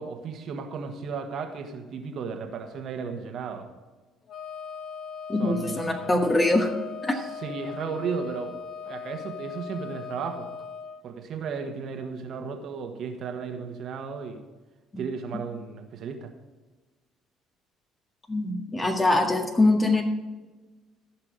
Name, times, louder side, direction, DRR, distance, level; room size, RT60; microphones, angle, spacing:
voice 1, 0.0-3.7 5.4-6.1 7.1-8.5 8.8-10.5 11.0-14.4 15.0-16.3, right 5 dB, 60° right, 5 dB, 1.5 m, -34 dB
Wind instrument woodwind instrument, 4.3-11.0, left 6 dB, 50° left, 1.0 m, -39 dB
voice 2, 5.3-6.7 7.0-7.2 14.9-15.0 18.3-20.0, left 2 dB, 25° left, 2 dB, 1.8 m, -23 dB
15.0 x 5.9 x 5.0 m, 1.2 s
hypercardioid pair, 55°, 0 cm